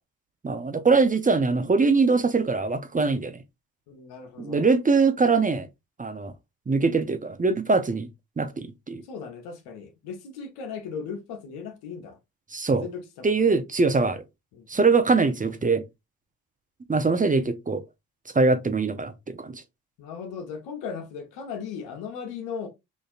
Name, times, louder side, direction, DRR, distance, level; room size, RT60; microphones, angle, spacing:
voice 1, 0.4-3.4 4.4-5.7 6.0-6.3 6.7-8.1 8.4-9.0 12.5-12.8 13.2-14.2 14.7-15.8 16.9-17.8 18.3-19.6, right 4 dB, 20° right, 0.7 m, -22 dB
voice 2, 3.9-4.7 9.1-12.2 12.7-13.4 14.5-14.7 20.0-22.7, left 6 dB, 85° left, 1.0 m, -37 dB
5.1 x 2.6 x 2.4 m
supercardioid pair, 55°, 37 cm